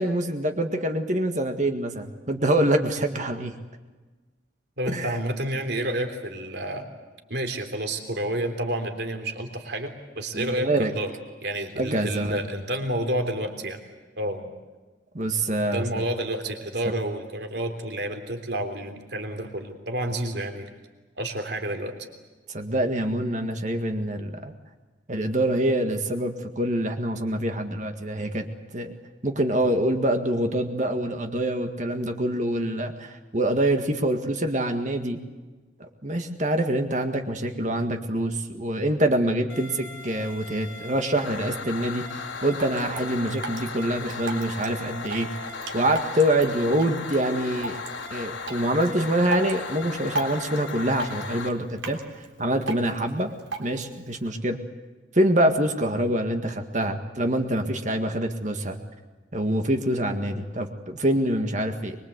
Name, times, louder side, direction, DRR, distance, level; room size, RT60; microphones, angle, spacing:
voice 1, 0.0-3.5 4.9-5.1 10.3-10.9 11.8-12.4 15.1-16.0 22.5-24.5 25.1-28.5 28.7-28.9 29.2-35.2 36.0-45.3 45.7-47.8 48.1-52.0 52.4-53.3 53.6-54.6 55.1-58.8 59.3-62.0, right 1 dB, 40° right, 5 dB, 1.8 m, -25 dB
voice 2, 4.8-6.9 7.3-11.1 11.4-13.8 14.2-14.5 15.7-20.7 21.2-21.9, right 1 dB, 60° right, 5 dB, 3.4 m, -30 dB
sound 1, 39.5-51.5, left 4 dB, 80° left, 2.8 m, -37 dB
Drip, 42.3-54.3, right 2 dB, 90° right, 3.6 m, -38 dB
24.0 x 23.0 x 8.2 m, 1.3 s
head